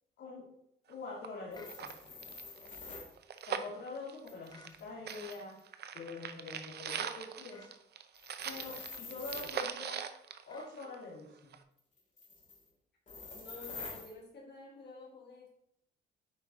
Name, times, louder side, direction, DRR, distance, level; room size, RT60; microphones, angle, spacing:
voice 1, 0.2-0.5 0.9-1.9 3.5-5.6 5.9-7.7 8.4-10.0 10.5-11.5, left 3 dB, 80° left, -9 dB, 2.7 m, -45 dB
sound 1, 0.9-1.0 1.2-1.3 1.6-4.8 5.1-11.2 11.5-11.6, right 8 dB, 55° right, 0.6 m, -41 dB
sound 2, 1.5-3.1 4.3-5.6 8.1-9.6 12.0-12.6 13.1-14.1, left 3 dB, 40° left, 2.8 m, -47 dB
sound 3, 1.5-1.8 4.5-4.8 7.5-7.8 10.5-10.8, left 3 dB, 20° left, 0.9 m, -57 dB
voice 2, 13.3-15.5, left 3 dB, 55° left, -2 dB, 1.5 m, -51 dB
8.6 x 5.0 x 2.8 m, 0.73 s
cardioid pair, 90°, 20 cm